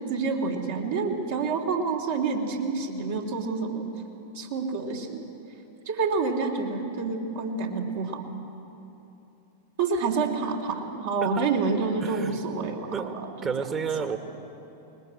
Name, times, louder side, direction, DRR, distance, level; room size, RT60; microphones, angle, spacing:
voice 1, 0.1-3.8 4.3-5.3 5.9-8.2 9.8-13.3 13.6-13.7, right 4 dB, 65° right, 1 dB, 3.1 m, -28 dB
voice 2, 12.0-12.4 12.9-13.2 13.4-14.2, right 6 dB, 25° right, 8 dB, 1.5 m, -31 dB
20.5 x 20.0 x 7.7 m, 2.9 s
figure-of-eight pair, 95°, 0 cm